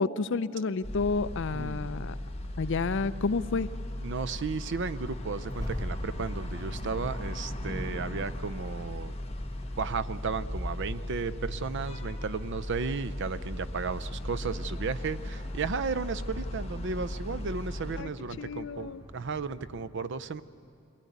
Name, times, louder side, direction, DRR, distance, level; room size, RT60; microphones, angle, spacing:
voice 1, 0.0-2.1 2.6-3.7 18.0-18.1 18.4-19.0, left 4 dB, 60° left, 14 dB, 0.5 m, -30 dB
sound 1, 0.8-18.0, left 1 dB, 30° left, 1.3 m, -37 dB
voice 2, 1.5-2.1 4.0-9.1 9.8-20.4, right 5 dB, 60° right, 15 dB, 0.6 m, -34 dB
Accelerating revving vroom, 4.1-19.8, equal, 20° right, 2.5 m, -44 dB
22.5 x 16.5 x 9.4 m, 2.7 s
head